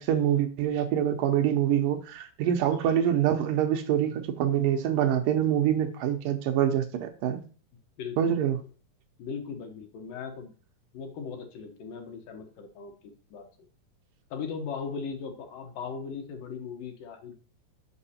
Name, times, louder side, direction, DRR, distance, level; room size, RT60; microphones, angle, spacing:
voice 1, 0.0-7.4 8.2-8.6, right 10 dB, 75° right, 2.3 m, -25 dB
voice 2, 8.0-8.5 9.2-10.5 10.9-13.5 14.3-17.3, left 5 dB, 70° left, 2.8 m, -38 dB
6.8 x 6.0 x 4.2 m
omnidirectional pair, 4.1 m